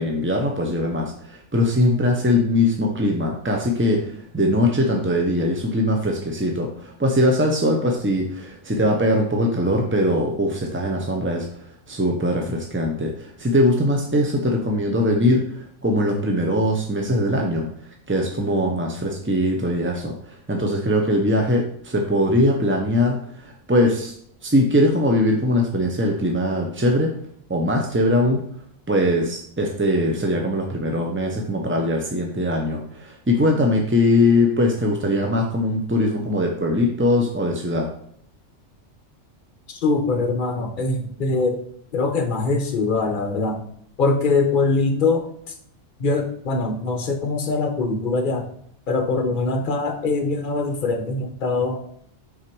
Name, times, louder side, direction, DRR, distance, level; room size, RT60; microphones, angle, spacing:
voice 1, 0.0-17.7 18.1-24.1 24.4-27.1 27.5-28.4 28.9-37.9, left 1 dB, 15° right, 1 dB, 0.4 m, -21 dB
voice 2, 39.7-41.6 41.9-43.6 44.0-45.5 46.0-48.5 48.9-51.8, left 3 dB, 45° left, 5 dB, 1.0 m, -22 dB
6.0 x 4.0 x 4.6 m, 0.64 s
omnidirectional pair, 1.3 m